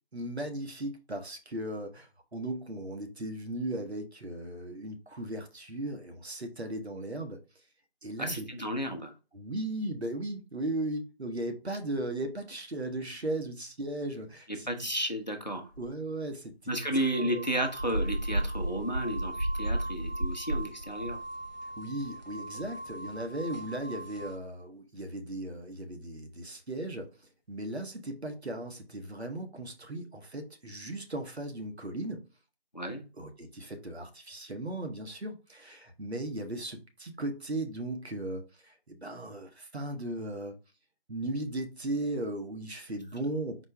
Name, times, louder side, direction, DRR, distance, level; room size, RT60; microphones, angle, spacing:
voice 1, 0.1-7.4 8.0-8.4 9.3-14.9 15.8-16.5 16.9-17.4 21.8-32.3 33.1-40.6 41.1-43.6, right 1 dB, 80° right, 1.0 m, -37 dB
voice 2, 8.2-9.1 14.7-15.7 16.7-21.2 32.7-33.0, right 1 dB, 45° left, 0.6 m, -32 dB
sound 1, 15.7-15.9 16.7-24.4, right 2 dB, 65° left, 0.9 m, -42 dB
sound 2, 17.7-22.3 22.5-22.7 23.1-23.2 23.5-23.7 24.2-24.4, right 1 dB, 45° right, 0.7 m, -33 dB
4.3 x 2.0 x 4.4 m
figure-of-eight pair, 175°, 32 cm